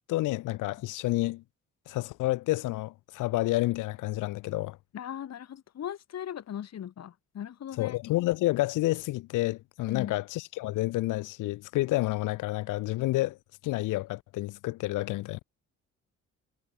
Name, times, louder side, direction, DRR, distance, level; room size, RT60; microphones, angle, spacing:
voice 1, 0.1-1.4 1.9-4.8 7.8-13.4 13.6-15.4, left 18 dB, 90° left, 0.9 m, -29 dB
voice 2, 4.9-8.0 9.9-10.1, left 10 dB, 60° left, 2.5 m, -38 dB
cardioid pair, 90°, 30 cm